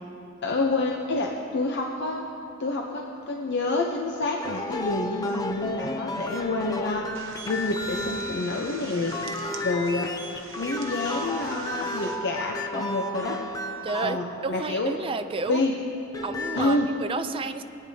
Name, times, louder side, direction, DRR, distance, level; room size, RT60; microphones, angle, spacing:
voice 1, 0.4-2.2 2.6-7.1 7.4-9.2 9.6-10.1 10.5-13.4 14.0-14.9 15.5-15.8 16.5-16.9, left 2 dB, 60° left, 0 dB, 0.8 m, -28 dB
sound 1, 4.4-14.9 15.9-16.7, left 1 dB, 20° left, 0.6 m, -33 dB
sound 2, 7.1-12.2, right 4 dB, 70° right, 0.8 m, -43 dB
voice 2, 13.8-15.6 16.2-17.6, right 4 dB, 25° right, 9 dB, 0.4 m, -31 dB
22.0 x 9.3 x 2.8 m, 2.7 s
head